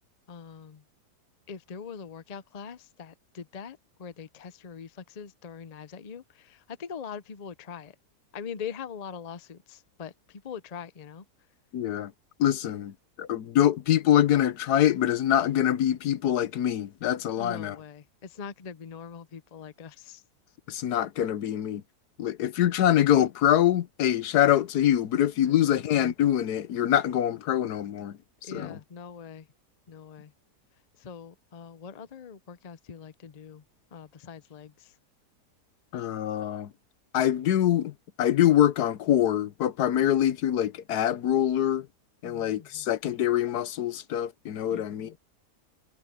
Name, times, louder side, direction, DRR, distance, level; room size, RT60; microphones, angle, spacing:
voice 1, 0.3-0.8 1.5-7.9 8.3-11.2 12.6-12.8 17.4-20.2 25.4-25.8 28.4-29.5 29.9-30.3 31.0-33.6 33.9-34.9 42.2-42.9 44.7-45.2, left 6 dB, 45° left, 0.5 m, -42 dB
voice 2, 11.7-12.1 12.4-12.9 13.2-17.8 20.7-21.8 22.2-28.2 28.5-28.8 35.9-36.7 37.1-37.9 38.2-41.9 42.2-45.1, left 11 dB, 75° left, 1.3 m, -24 dB
omnidirectional pair, 1.7 m